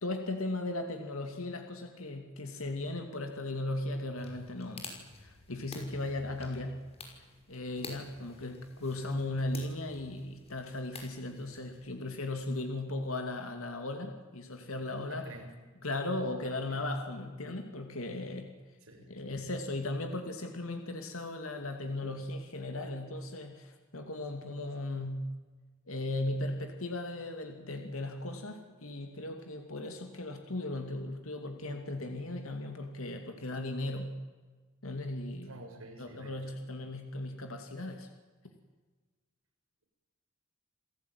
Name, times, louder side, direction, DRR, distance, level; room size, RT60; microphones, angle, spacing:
voice 1, 0.0-4.9 5.2-6.8 7.5-15.2 15.8-18.5 19.1-25.3 25.9-34.2 34.8-35.5 36.0-38.1, left 2 dB, 70° left, 5 dB, 2.6 m, -37 dB
sound 1, 4.2-11.9, left 3 dB, 30° left, 5.7 m, -50 dB
voice 2, 14.9-15.5 16.4-16.8 18.8-19.3 35.4-36.6, right 1 dB, 70° right, 2 dB, 7.2 m, -50 dB
29.0 x 17.5 x 9.7 m, 1.4 s
head